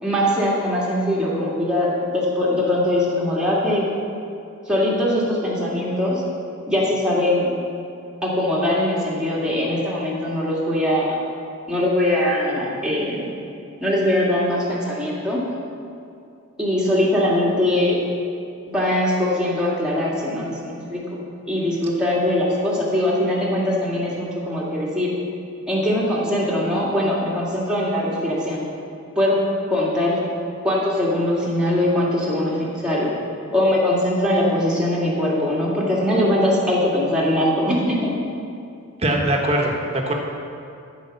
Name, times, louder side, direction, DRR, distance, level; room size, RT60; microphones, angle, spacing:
voice 1, 0.0-3.9 4.7-6.2 6.7-7.5 8.2-11.2 11.7-13.3 13.8-15.4 16.6-18.0 18.7-21.0 21.5-25.1 25.7-28.6 29.2-29.4 29.7-30.2 30.6-32.6 32.8-33.1 33.5-38.1, left 1 dB, 5° right, -6 dB, 2.0 m, -21 dB
voice 2, 39.0-40.1, right 1 dB, 30° right, 0 dB, 1.3 m, -21 dB
13.5 x 5.1 x 7.0 m, 2.5 s
head